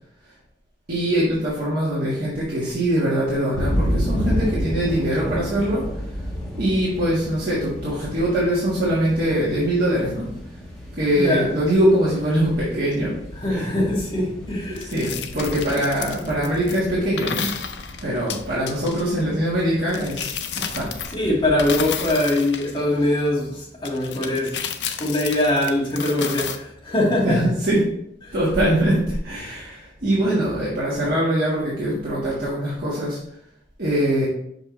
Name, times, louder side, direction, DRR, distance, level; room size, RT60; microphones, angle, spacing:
voice 1, 0.9-5.8 6.6-10.3 11.0-13.1 13.5-13.7 14.7-17.5 18.0-20.3 20.6-20.9 27.2-27.8 28.3-33.2 33.8-34.3, right 1 dB, 50° right, -8 dB, 1.5 m, -22 dB
sound 1, 3.5-22.1, equal, 5° left, 1.4 m, -32 dB
voice 2, 11.1-11.5 13.4-14.9 21.1-24.6 25.0-27.4 28.3-28.4, left 1 dB, 25° left, -6 dB, 1.9 m, -22 dB
sound 2, 14.7-16.8 17.2-19.1 19.9-21.3 21.6-23.2 23.8-26.6, left 8 dB, 65° left, 0.5 m, -32 dB
5.5 x 5.4 x 3.2 m, 0.73 s
head